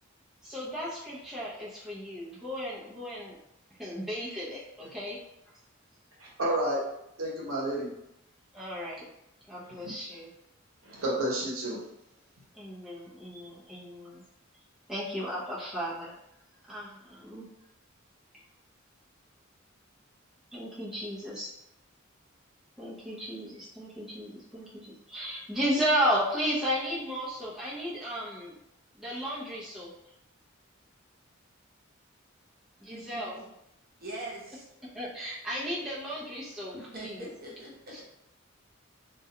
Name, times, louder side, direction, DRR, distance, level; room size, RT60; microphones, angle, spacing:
voice 1, 0.4-3.4 3.8-5.2 8.5-9.1 9.5-10.3 12.5-14.2 14.9-16.2 16.7-17.4 20.5-21.5 22.8-28.6 28.9-29.9 32.8-33.4 34.9-37.2 37.9-38.0, equal, ahead, -9 dB, 0.6 m, -34 dB
voice 2, 6.2-6.8 7.2-7.9 9.8-9.9 10.8-11.8, right 1 dB, 80° right, -4 dB, 0.8 m, -30 dB
voice 3, 32.9-33.5 34.0-34.6 36.7-38.0, right 1 dB, 50° right, -5 dB, 0.9 m, -42 dB
2.3 x 2.2 x 2.8 m, 0.83 s
head